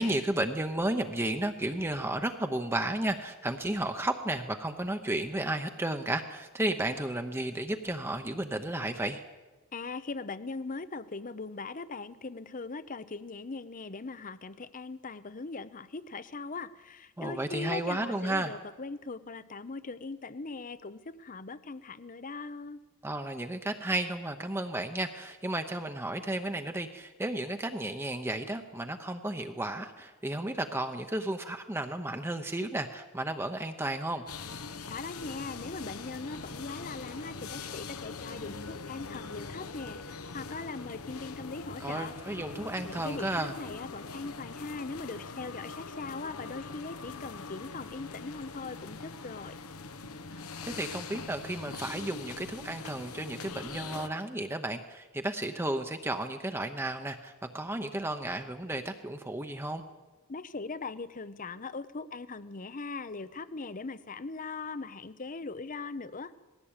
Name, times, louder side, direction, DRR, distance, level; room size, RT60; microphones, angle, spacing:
voice 1, 0.0-9.2 17.2-18.5 23.0-34.2 41.8-43.5 50.6-59.8, right 1 dB, 10° right, 6 dB, 0.9 m, -33 dB
voice 2, 9.7-22.8 34.9-42.1 42.8-49.6 60.3-66.3, left 3 dB, 35° left, 15 dB, 0.7 m, -40 dB
sound 1, 34.3-54.1, left 4 dB, 75° left, 1.1 m, -42 dB
20.0 x 16.0 x 8.9 m, 1.2 s
head